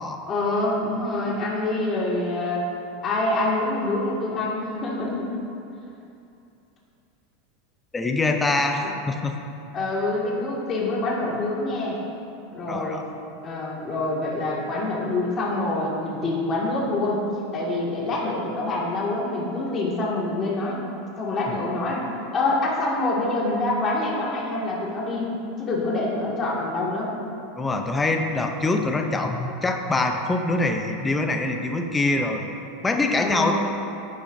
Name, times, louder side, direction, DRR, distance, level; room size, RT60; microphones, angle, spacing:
voice 1, 0.3-2.7 3.0-5.3 9.7-12.0 12.5-13.1 13.4-17.2 17.5-20.8 21.2-22.1 22.3-25.3 25.6-27.1 33.2-33.5, left 2 dB, 30° left, -4 dB, 2.0 m, -26 dB
voice 2, 7.9-9.4 12.7-13.0 27.6-32.5 32.8-33.5, left 2 dB, 10° left, 4 dB, 0.6 m, -24 dB
15.0 x 6.8 x 2.7 m, 2.7 s
supercardioid pair, 145°, 0 cm